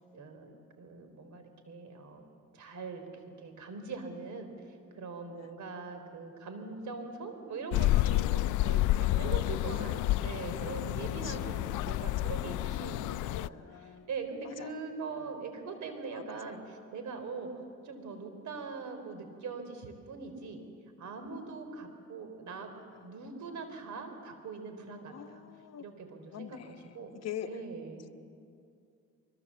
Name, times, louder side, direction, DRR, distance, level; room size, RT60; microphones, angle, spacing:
voice 1, 0.1-2.2 2.5-3.1 3.4-17.5 17.8-20.6 21.0-22.7 23.0-25.4 25.8-27.2 27.5-28.1, right 4 dB, 70° right, 7 dB, 3.6 m, -42 dB
sound 1, 7.7-13.5, left 16 dB, 85° left, 0.5 m, -30 dB
voice 2, 11.9-12.3 13.1-14.1 14.4-14.8 15.2-15.4 16.1-16.6 25.1-25.8 26.3-27.5, left 11 dB, 60° left, 9 dB, 1.0 m, -45 dB
24.0 x 22.0 x 7.4 m, 2.4 s
cardioid pair, 90°, 30 cm